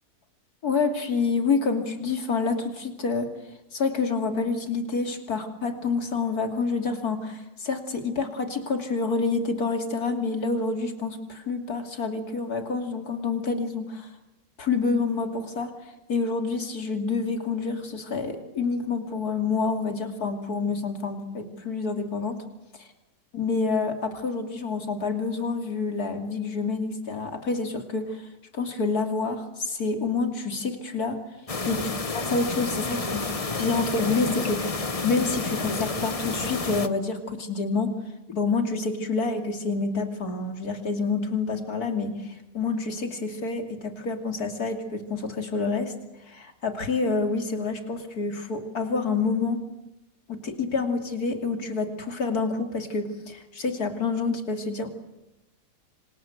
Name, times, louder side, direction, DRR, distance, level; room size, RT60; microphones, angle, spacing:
voice 1, 0.6-3.3 3.7-14.1 14.6-15.7 16.1-22.4 22.8-22.9 23.3-28.2 28.5-31.2 31.7-31.8 32.1-33.3 33.6-37.9 38.3-45.9 46.2-49.6 50.3-54.9, left 4 dB, 60° left, 6 dB, 3.3 m, -28 dB
sound 1, 31.5-36.9, left 3 dB, 25° left, 1.0 m, -30 dB
27.0 x 26.5 x 8.0 m, 0.94 s
omnidirectional pair, 1.8 m